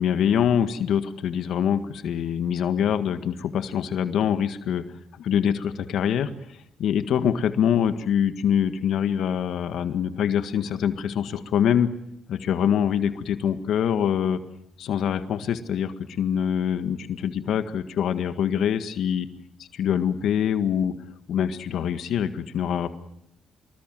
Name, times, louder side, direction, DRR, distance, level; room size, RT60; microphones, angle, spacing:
voice 1, 0.0-4.8 5.2-6.3 6.8-11.9 12.3-14.4 14.8-19.3 19.7-20.9 21.3-22.9, left 8 dB, 75° left, 9 dB, 1.7 m, -24 dB
26.0 x 21.5 x 7.7 m, 0.75 s
cardioid pair, 90°, 0 cm